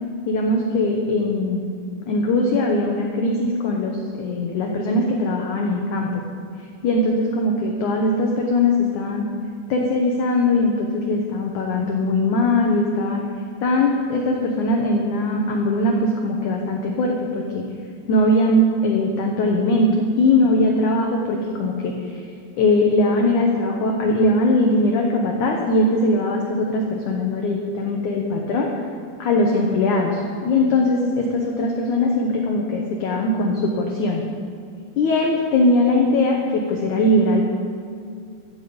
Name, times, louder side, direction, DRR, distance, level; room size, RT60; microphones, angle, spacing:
voice 1, 0.3-1.7 2.1-6.2 6.8-9.2 9.7-13.2 13.6-17.6 18.1-21.9 22.6-28.7 29.2-34.2 35.0-37.4, left 2 dB, 65° left, 0 dB, 2.0 m, -20 dB
15.5 x 13.0 x 5.3 m, 2.3 s
omnidirectional pair, 4.9 m